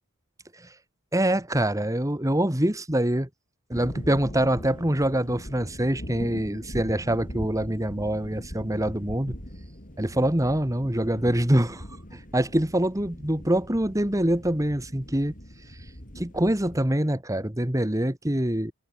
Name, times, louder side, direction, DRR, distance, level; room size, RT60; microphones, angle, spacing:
voice 1, 1.1-3.3 3.7-9.3 10.0-11.8 12.1-15.3 16.2-18.7, right 1 dB, 15° right, 2.0 m, -25 dB
sound 1, 3.7-16.9, equal, 40° left, 7.5 m, -41 dB
head